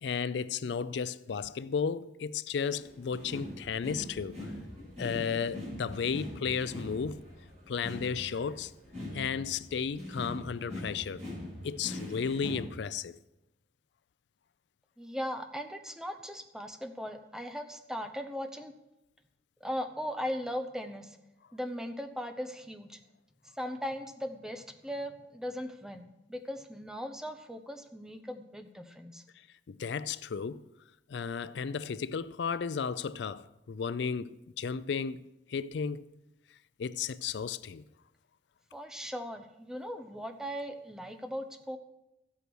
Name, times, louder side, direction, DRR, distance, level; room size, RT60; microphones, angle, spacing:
voice 1, 0.0-4.4 5.0-7.2 7.7-8.7 9.1-11.2 11.6-13.2 29.7-30.6 31.1-35.2 35.5-36.0 36.8-37.8, left 6 dB, 75° left, 0.4 m, -34 dB
sound 1, 2.8-12.6, left 1 dB, 40° right, 5.7 m, -42 dB
voice 2, 15.0-18.7 19.6-21.2 21.5-23.0 23.6-29.2 38.7-41.8, equal, 5° right, 0.7 m, -38 dB
12.5 x 8.4 x 6.2 m
head